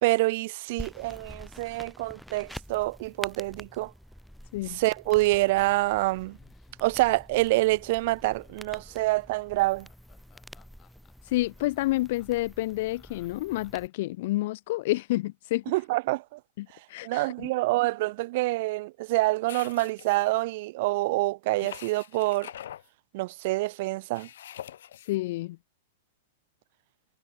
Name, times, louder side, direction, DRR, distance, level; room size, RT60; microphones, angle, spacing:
voice 1, 0.0-3.9 4.7-6.4 6.8-9.9 15.7-16.4 17.0-22.5 23.1-24.3, right 20 dB, 55° right, 0.5 m, -26 dB
sound 1, 0.8-13.9, equal, ahead, 6.0 m, -47 dB
Laughter, 6.1-14.0, left 11 dB, 25° left, 6.4 m, -62 dB
voice 2, 11.3-15.6 16.6-17.5 25.1-25.6, left 18 dB, 55° left, 0.5 m, -29 dB
sound 2, 19.5-20.4 21.6-22.9 24.1-25.2, left 11 dB, 75° left, 1.5 m, -44 dB
hypercardioid pair, 140°, 0 cm